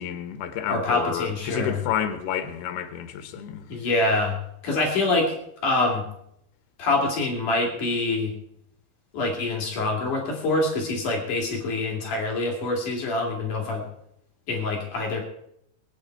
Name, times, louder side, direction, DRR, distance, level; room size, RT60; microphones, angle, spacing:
voice 1, 0.0-3.7, left 8 dB, 80° left, 3.1 m, -30 dB
voice 2, 0.7-1.8 3.7-4.4 4.6-5.3 5.6-6.0 6.8-8.3 9.1-13.9 14.5-15.2, left 2 dB, 55° left, 3.9 m, -25 dB
23.0 x 9.3 x 4.6 m
omnidirectional pair, 4.5 m